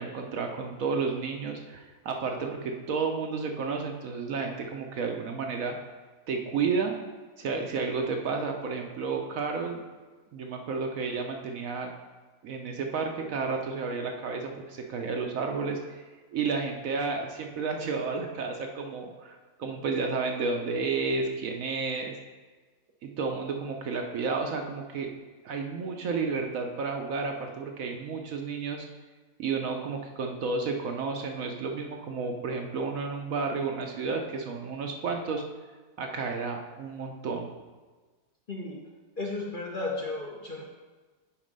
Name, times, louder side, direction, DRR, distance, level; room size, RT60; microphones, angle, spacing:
voice 1, 0.0-5.8 6.3-6.9 7.4-9.8 10.3-11.9 12.4-16.0 16.3-22.1 23.0-25.1 25.4-28.9 29.4-35.4 36.0-37.5, right 4 dB, 65° right, 3 dB, 1.0 m, -31 dB
voice 2, 38.5-38.8 39.2-40.6, left 2 dB, 40° left, -2 dB, 0.8 m, -34 dB
7.3 x 4.3 x 5.2 m, 1.3 s
omnidirectional pair, 1.7 m